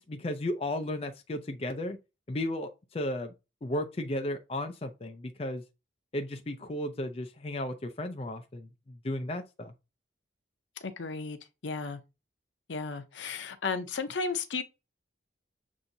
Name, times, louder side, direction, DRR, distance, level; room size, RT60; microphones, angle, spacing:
voice 1, 0.0-2.0 2.3-3.3 3.6-5.6 6.1-9.7, left 1 dB, 30° left, 0.4 m, -34 dB
voice 2, 10.8-12.0 12.7-14.6, left 4 dB, 75° left, 0.6 m, -34 dB
7.3 x 2.6 x 2.7 m
head